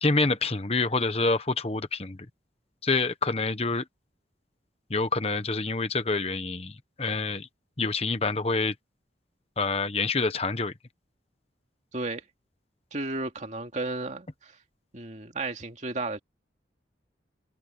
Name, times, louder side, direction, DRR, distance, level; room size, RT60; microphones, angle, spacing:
voice 1, 0.0-2.2 2.8-3.8 4.9-6.7 7.0-7.5 7.8-8.7 9.6-10.7, left 3 dB, 35° left, 1.1 m, -27 dB
voice 2, 11.9-12.2 12.9-14.6 14.9-16.2, right 2 dB, 40° right, 2.4 m, -33 dB
open air
head